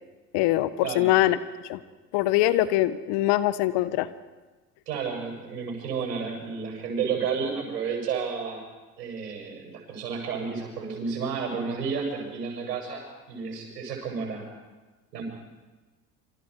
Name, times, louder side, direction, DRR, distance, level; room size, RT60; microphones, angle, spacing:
voice 1, 0.3-1.4 1.7-1.8 2.1-4.1, left 15 dB, 55° left, 14 dB, 1.4 m, -23 dB
voice 2, 4.9-8.6 9.0-13.0 13.3-14.5 15.1-15.2, right 5 dB, 80° right, 1 dB, 7.3 m, -31 dB
27.0 x 26.5 x 4.9 m, 1.2 s
hypercardioid pair, 75°, 48 cm